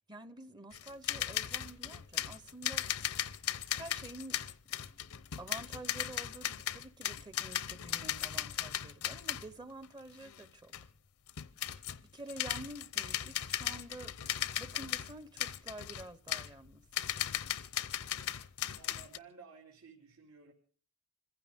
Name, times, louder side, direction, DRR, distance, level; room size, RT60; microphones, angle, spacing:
voice 1, 0.0-3.1 3.7-4.4 4.7-4.8 5.4-10.7 12.1-14.2 14.6-16.8, right 2 dB, 20° right, 0.7 m, -49 dB
sound 1, 0.7-9.5 9.8-9.9 10.2-10.5 10.7-10.9 11.3-12.0 12.3-19.2, left 11 dB, 75° left, 0.7 m, -37 dB
voice 2, 18.7-20.5, right 5 dB, 80° right, 2.9 m, -55 dB
26.5 x 15.5 x 3.5 m
head